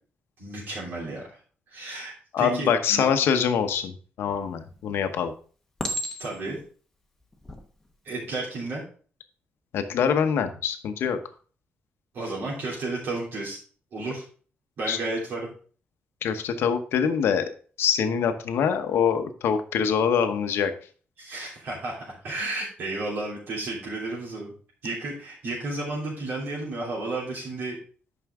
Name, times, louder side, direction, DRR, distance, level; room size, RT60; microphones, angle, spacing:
voice 1, 0.4-1.4 1.7-3.1 6.2-6.6 8.0-8.8 12.1-13.6 13.9-14.2 14.8-15.5 21.2-24.5 24.8-27.8, right 2 dB, 60° right, -6 dB, 3.1 m, -32 dB
voice 2, 2.3-5.3 9.7-11.2 14.9-15.0 16.2-17.5 17.8-20.7, left 7 dB, 85° left, 8 dB, 0.9 m, -24 dB
Chink clink, 4.3-4.8 5.8-6.6 7.3-7.6, equal, 10° left, 1.1 m, -32 dB
9.4 x 6.0 x 3.6 m, 0.41 s
wide cardioid pair, 165°, 4 cm